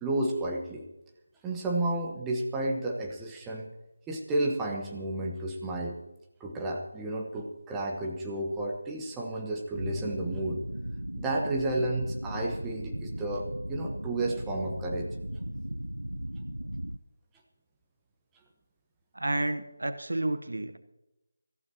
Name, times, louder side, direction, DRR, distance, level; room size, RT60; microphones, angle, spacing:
voice 1, 0.0-0.9 1.4-3.7 4.1-6.0 6.4-10.6 11.2-15.1, right 2 dB, 10° right, -1 dB, 1.1 m, -32 dB
sound 1, 9.7-17.0, equal, 80° right, 0.5 m, -37 dB
voice 2, 19.1-20.8, right 1 dB, 60° right, 10 dB, 1.0 m, -30 dB
23.5 x 14.5 x 2.9 m, 0.98 s
figure-of-eight pair, 160°, 0 cm